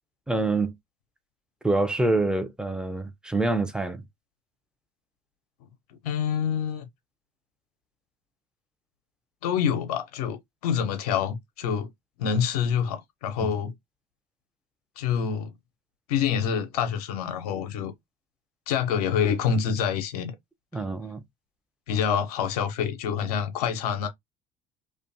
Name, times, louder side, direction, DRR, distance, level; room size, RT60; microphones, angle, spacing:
voice 1, 0.3-0.8 1.6-4.0 13.4-13.5 20.7-21.2, right 2 dB, 5° right, 0.5 m, -26 dB
voice 2, 6.0-6.9 9.4-11.9 12.2-13.7 15.0-15.5 16.1-17.9 18.7-20.3 21.9-24.1, left 7 dB, 80° left, 0.6 m, -26 dB
2.5 x 2.2 x 2.5 m
hypercardioid pair, 70°, 19 cm